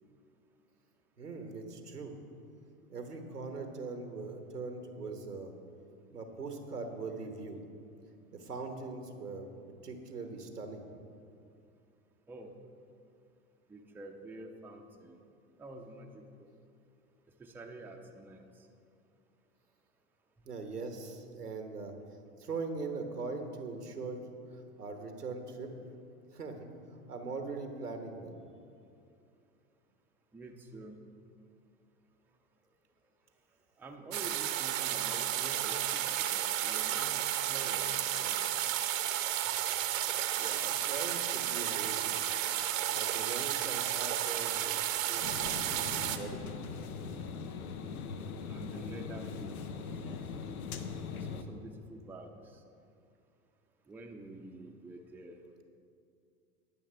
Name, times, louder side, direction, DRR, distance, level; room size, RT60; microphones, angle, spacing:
voice 1, 1.2-2.2 2.9-5.5 6.1-7.6 8.3-9.5 9.8-10.9 20.5-21.9 22.4-25.7 26.3-26.7 27.1-28.3 40.4-42.1 42.9-46.5, right 4 dB, 85° right, 5 dB, 1.3 m, -41 dB
voice 2, 13.7-15.2 15.6-16.5 17.4-18.5 30.3-31.0 33.8-38.7 48.5-49.6 51.1-52.6 53.9-55.4, right 2 dB, 5° right, 2 dB, 0.6 m, -48 dB
sound 1, 34.1-46.2, right 11 dB, 60° right, 0.9 m, -32 dB
sound 2, 45.2-51.4, left 5 dB, 70° left, 0.9 m, -41 dB
19.5 x 7.2 x 3.3 m, 2.5 s
figure-of-eight pair, 90°, 45 cm